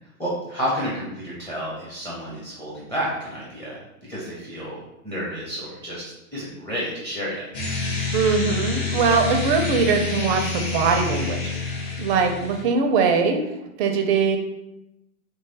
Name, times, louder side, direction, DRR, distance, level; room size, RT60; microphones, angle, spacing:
voice 1, 0.0-4.8 5.0-7.4, equal, 5° left, -6 dB, 1.0 m, -31 dB
sound 1, 7.5-12.6, left 4 dB, 30° left, 1.4 m, -27 dB
voice 2, 8.1-11.4 12.0-13.4 13.8-14.4, right 5 dB, 35° right, 5 dB, 0.6 m, -21 dB
3.6 x 3.2 x 4.0 m, 0.92 s
hypercardioid pair, 115°, 44 cm